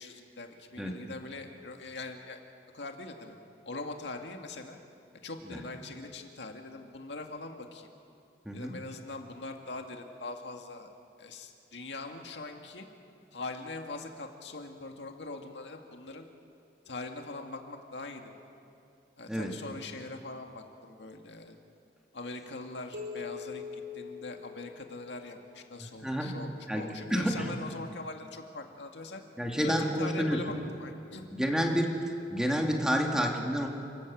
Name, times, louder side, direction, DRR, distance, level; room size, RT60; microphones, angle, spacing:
voice 1, 0.0-2.4 2.7-3.4 3.7-4.8 5.2-7.9 8.5-10.9 11.2-12.9 13.3-16.3 16.9-18.3 19.2-21.6 22.1-29.2 29.6-31.3, left 2 dB, 80° left, 4 dB, 2.1 m, -42 dB
voice 2, 8.4-8.8 19.3-19.5 25.8-26.3 26.7-27.6 29.4-30.4 31.3-31.9 32.3-33.7, equal, 5° right, 1 dB, 2.4 m, -29 dB
sound 1, 22.9-25.3, left 6 dB, 80° right, 5.1 m, -42 dB
29.0 x 14.0 x 8.6 m, 2.5 s
head